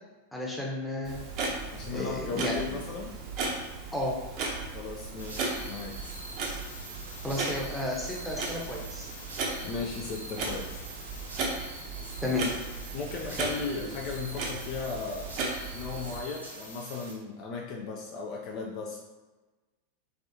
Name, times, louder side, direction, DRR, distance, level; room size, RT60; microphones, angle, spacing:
voice 1, 0.3-1.2 1.9-2.8 3.9-4.2 7.2-9.1 12.2-12.5, left 2 dB, ahead, -3 dB, 0.8 m, -32 dB
Clock, 1.0-16.2, right 3 dB, 40° right, 0.7 m, -36 dB
voice 2, 1.7-3.1 4.7-6.0 9.6-10.8 12.9-15.4 15.7-19.0, left 4 dB, 40° left, -1 dB, 0.5 m, -36 dB
sound 1, 5.2-17.1, right 1 dB, 85° right, 1.0 m, -44 dB
3.4 x 3.4 x 2.7 m, 1.2 s
figure-of-eight pair, 90°, 0 cm